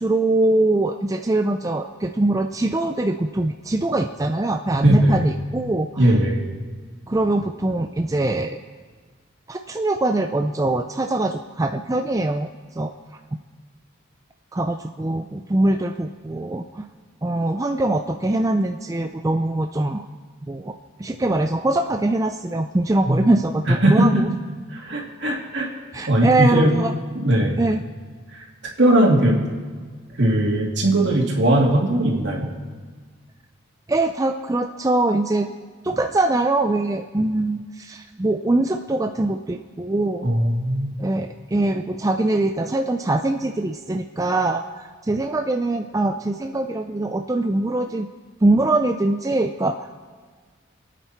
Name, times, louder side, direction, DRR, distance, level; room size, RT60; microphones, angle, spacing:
voice 1, 0.0-6.2 7.1-8.6 9.5-12.5 12.8-12.9 14.5-16.9 17.2-20.0 20.4-20.7 21.0-24.3 25.9-26.9 27.6-27.8 33.9-35.5 35.8-40.3 41.0-48.1 48.4-50.1, right 2 dB, 15° right, 5 dB, 0.4 m, -22 dB
voice 2, 4.8-5.2 6.0-6.4 23.0-23.2 23.7-24.2 24.7-25.7 26.1-26.8 27.1-27.6 28.6-29.4 30.2-32.5 40.2-40.9, right 1 dB, 60° right, -1 dB, 2.8 m, -19 dB
27.0 x 9.2 x 4.5 m, 1.5 s
head